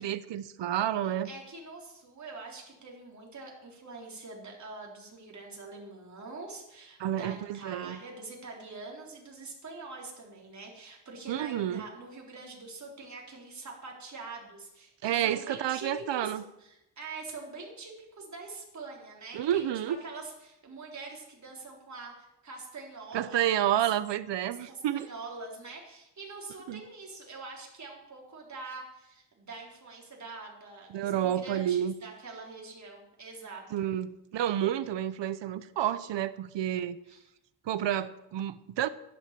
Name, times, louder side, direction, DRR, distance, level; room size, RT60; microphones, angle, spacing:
voice 1, 0.0-1.3 7.0-8.0 11.3-11.9 15.0-16.4 19.3-20.0 23.1-25.1 26.7-26.8 30.9-31.9 33.7-37.0 37.6-38.9, right 11 dB, 85° right, 15 dB, 0.8 m, -30 dB
voice 2, 1.2-16.3 16.6-23.8 24.7-33.9 37.1-37.2, right 3 dB, 40° right, -1 dB, 3.9 m, -44 dB
11.5 x 10.5 x 7.5 m, 0.88 s
wide cardioid pair, 120°, 42 cm